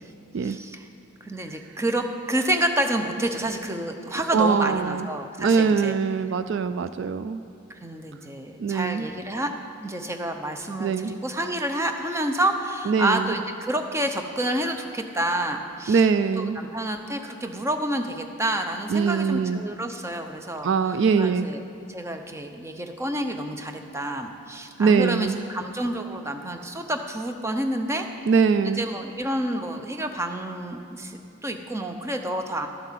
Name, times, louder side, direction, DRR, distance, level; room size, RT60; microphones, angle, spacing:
voice 1, 0.4-0.9 1.2-6.0 7.8-9.5 9.8-16.1 16.4-21.6 21.9-28.0 28.6-32.7, right 1 dB, 15° right, 5 dB, 0.7 m, -29 dB
voice 2, 4.3-5.1 5.4-7.4 8.6-9.1 10.8-11.1 12.9-13.3 15.9-16.6 18.9-19.6 20.6-21.5 24.8-25.4 28.3-28.8, right 5 dB, 60° right, 12 dB, 0.3 m, -22 dB
12.0 x 7.7 x 7.4 m, 2.5 s
head